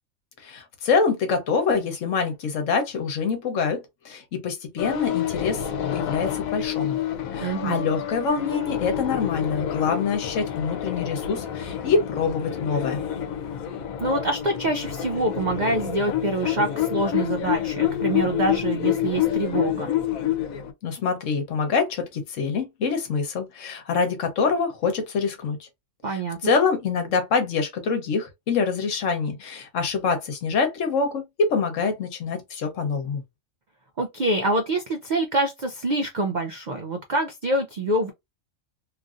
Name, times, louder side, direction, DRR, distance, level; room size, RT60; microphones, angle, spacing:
voice 1, 0.4-5.6 5.9-7.0 7.3-13.0 20.8-25.7 26.1-33.2, left 5 dB, 70° left, 1.2 m, -25 dB
sound 1, 4.8-20.7, left 11 dB, 90° left, 1.0 m, -28 dB
voice 2, 7.4-7.8 14.0-19.9 26.0-26.5 34.0-38.1, right 2 dB, 65° right, 0.4 m, -26 dB
3.0 x 2.5 x 2.4 m
omnidirectional pair, 1.4 m